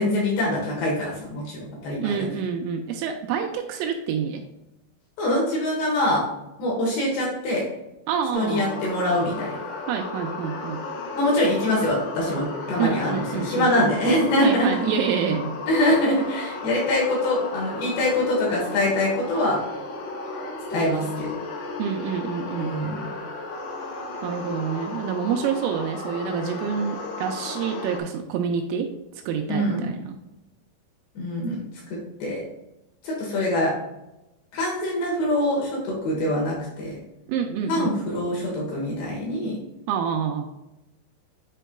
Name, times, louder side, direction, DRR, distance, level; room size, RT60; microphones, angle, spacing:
voice 1, 0.0-2.2 5.2-6.2 6.6-7.6 8.4-9.5 11.2-14.7 15.7-19.6 20.7-21.4 22.5-23.1 29.5-29.9 31.2-31.6 31.9-32.4 33.0-33.7 34.5-36.9 37.7-39.6, left 1 dB, 70° left, -3 dB, 2.8 m, -24 dB
voice 2, 2.0-4.4 8.1-8.6 9.9-10.8 12.8-13.7 14.4-15.6 21.8-22.7 24.2-28.9 29.3-30.2 37.3-38.0 39.9-40.5, right 7 dB, 85° right, 3 dB, 2.9 m, -27 dB
sound 1, 8.3-28.0, left 3 dB, 90° left, 3.9 m, -34 dB
10.0 x 4.5 x 2.2 m, 0.94 s
omnidirectional pair, 6.0 m